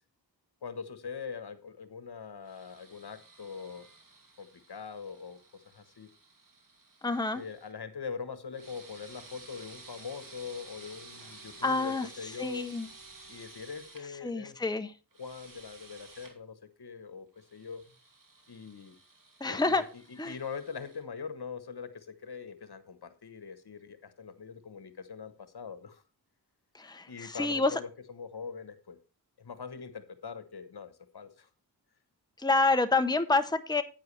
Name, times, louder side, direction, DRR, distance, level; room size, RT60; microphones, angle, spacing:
voice 1, 0.6-3.9 4.4-6.1 7.3-12.7 13.3-14.6 15.2-17.8 18.5-18.9 19.5-26.0 27.1-29.0 29.4-31.5, left 6 dB, 70° left, 11 dB, 1.2 m, -42 dB
sound 1, 2.4-7.7 8.5-14.0 15.1-16.3 17.4-21.0, right 3 dB, 55° right, 2.5 m, -53 dB
voice 2, 7.0-7.4 11.6-12.1 12.4-12.9 14.2-14.9 19.4-19.8 20.2-20.3 26.8-27.7 32.4-33.8, left 3 dB, 10° left, 9 dB, 0.8 m, -28 dB
10.5 x 9.2 x 3.3 m, 0.34 s
wide cardioid pair, 65°, 40 cm